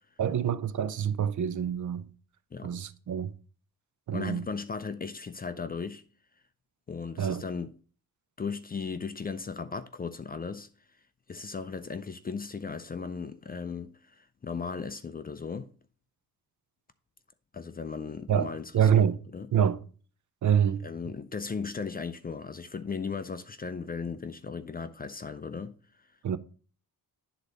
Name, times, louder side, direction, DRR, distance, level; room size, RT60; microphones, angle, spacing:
voice 1, 0.2-2.1 2.6-3.3 4.1-4.5 7.2-7.4 18.3-19.2 19.5-19.8 20.4-20.8 26.2-26.4, right 8 dB, 50° right, 0.6 m, -26 dB
voice 2, 4.1-6.0 6.9-7.7 8.4-10.7 11.3-15.7 17.5-19.5 20.8-25.8, left 5 dB, 25° left, 0.4 m, -37 dB
10.0 x 4.0 x 4.8 m
wide cardioid pair, 150°, 38 cm